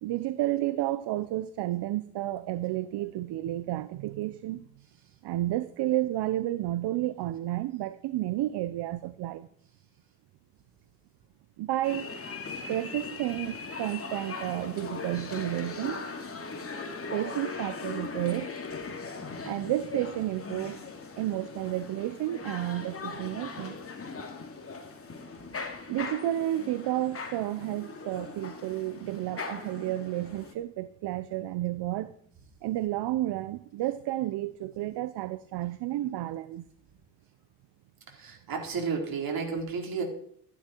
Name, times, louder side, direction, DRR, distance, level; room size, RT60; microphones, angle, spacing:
voice 1, 0.0-4.7 5.2-9.5 11.6-12.2 12.7-16.1 17.1-18.6 19.4-20.8 21.2-23.8 25.9-32.1 32.6-36.7, right 15 dB, 75° right, 0.8 m, -31 dB
sound 1, 11.8-30.5, left 4 dB, 35° left, 2.7 m, -39 dB
voice 2, 38.2-40.0, right 5 dB, 55° right, 4.5 m, -32 dB
15.0 x 11.5 x 4.6 m
cardioid pair, 80°, 41 cm